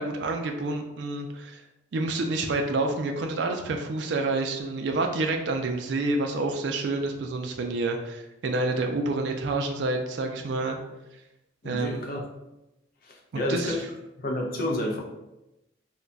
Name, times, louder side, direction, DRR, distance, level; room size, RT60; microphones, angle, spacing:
voice 1, 0.0-1.6 1.9-10.8 11.6-12.0 13.3-13.8, right 2 dB, 65° right, 4 dB, 0.3 m, -28 dB
voice 2, 11.6-12.2 13.0-13.8 14.2-15.0, left 1 dB, 50° left, 0 dB, 0.5 m, -30 dB
2.3 x 2.1 x 3.9 m, 0.95 s
head